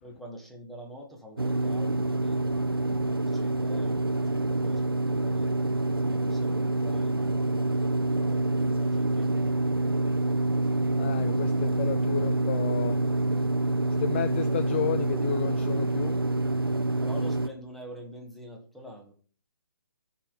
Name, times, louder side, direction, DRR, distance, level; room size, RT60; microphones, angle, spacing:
voice 1, 0.0-2.5 3.0-4.0 4.3-5.5 6.1-7.3 8.0-9.5 17.0-19.1, equal, ahead, 2.1 m, -45 dB
sound 1, 1.4-17.5, right 2 dB, 90° right, 1.2 m, -27 dB
voice 2, 11.0-13.0 14.0-16.2, left 10 dB, 30° left, 0.5 m, -32 dB
14.0 x 5.9 x 5.4 m
figure-of-eight pair, 140°, 12 cm